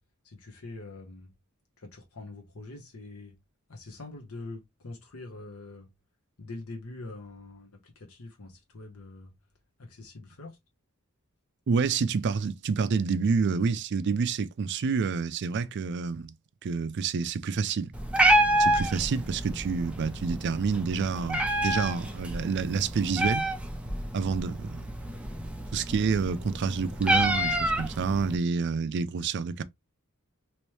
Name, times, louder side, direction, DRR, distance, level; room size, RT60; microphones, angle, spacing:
voice 1, 0.2-1.3 1.8-3.3 3.7-5.9 6.4-9.3 9.8-10.6, left 2 dB, 90° left, 1.0 m, -44 dB
voice 2, 11.7-16.3 16.6-17.9 18.6-23.5 24.1-24.8 25.7-29.6, right 5 dB, 55° right, 0.4 m, -28 dB
Meow, 17.9-28.4, right 1 dB, 5° right, 0.5 m, -28 dB
3.1 x 3.1 x 3.1 m
head